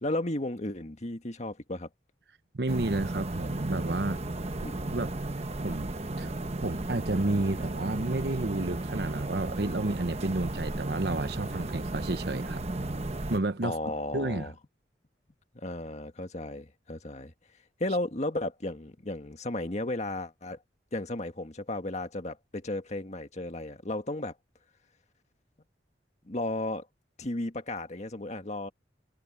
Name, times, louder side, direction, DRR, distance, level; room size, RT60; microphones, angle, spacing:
voice 1, 0.0-1.9 4.6-4.8 13.6-14.5 15.5-17.3 17.8-20.6 20.9-24.3 26.3-26.9 27.2-28.7, left 1 dB, 40° left, 1.7 m, -34 dB
voice 2, 2.5-4.2 4.9-5.1 5.6-5.9 6.2-6.3 6.6-12.6 13.3-14.5, right 2 dB, 65° right, 1.0 m, -31 dB
sound 1, 2.7-13.4, right 2 dB, 35° right, 1.1 m, -34 dB
head